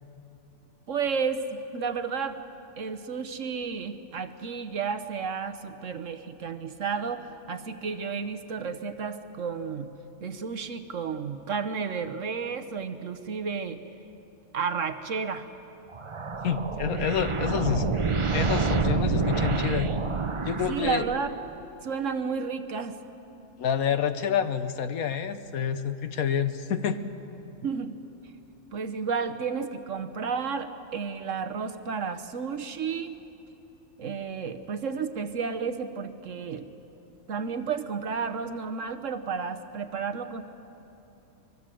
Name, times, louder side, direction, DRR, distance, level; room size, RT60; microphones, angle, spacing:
voice 1, 0.9-2.4 2.8-9.9 10.2-13.8 14.5-15.5 20.7-21.3 21.8-23.0 27.6-28.0 28.2-28.3 28.7-33.2 34.0-36.7 37.3-40.4, right 5 dB, 55° right, 9 dB, 1.2 m, -32 dB
sound 1, 15.9-21.4, right 4 dB, 30° right, 0.6 m, -28 dB
voice 2, 16.4-17.9 18.3-19.9 20.4-21.0 23.6-27.0, left 8 dB, 65° left, 10 dB, 1.3 m, -28 dB
24.0 x 21.5 x 7.6 m, 2.9 s
omnidirectional pair, 1.7 m